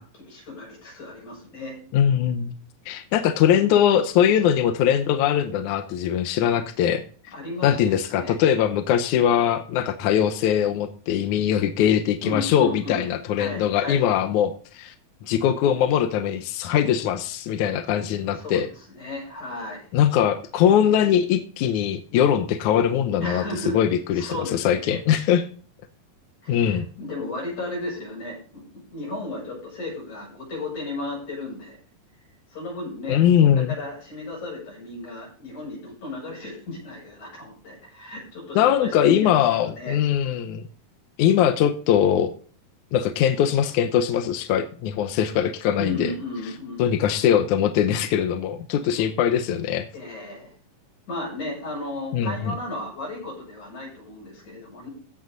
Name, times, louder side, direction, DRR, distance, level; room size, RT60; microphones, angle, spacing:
voice 1, 0.0-1.8 7.3-8.4 12.2-13.1 13.4-14.1 18.4-19.9 23.2-23.8 24.2-25.0 26.4-31.8 32.5-39.4 39.6-40.0 45.8-46.9 48.7-49.1 49.9-50.5 51.1-54.9, left 2 dB, 50° left, -2 dB, 8.7 m, -34 dB
voice 2, 1.9-2.6 2.9-7.0 7.6-14.9 15.2-18.7 19.9-25.5 26.5-26.8 33.1-33.7 38.6-40.6 41.2-42.3 42.9-46.1 46.8-49.9 52.1-52.5, left 9 dB, 75° left, 8 dB, 1.9 m, -21 dB
15.5 x 8.0 x 3.9 m, 0.42 s
omnidirectional pair, 4.3 m